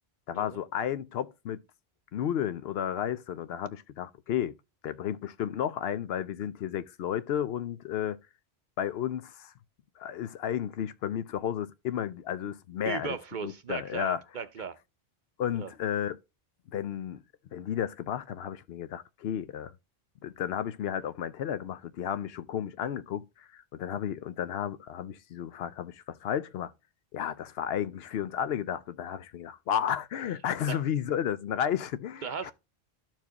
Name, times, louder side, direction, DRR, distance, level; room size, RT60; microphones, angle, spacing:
voice 1, 0.3-1.6 2.1-4.6 4.8-8.2 8.8-9.5 10.0-14.2 15.4-16.2 16.7-17.2 17.5-19.7 20.2-26.7 27.1-32.5, left 9 dB, 70° left, 0.8 m, -33 dB
voice 2, 12.8-14.8 15.5-15.7 30.7-30.8 32.2-32.5, right 6 dB, 55° right, 0.7 m, -36 dB
13.0 x 4.6 x 2.9 m
omnidirectional pair, 1.1 m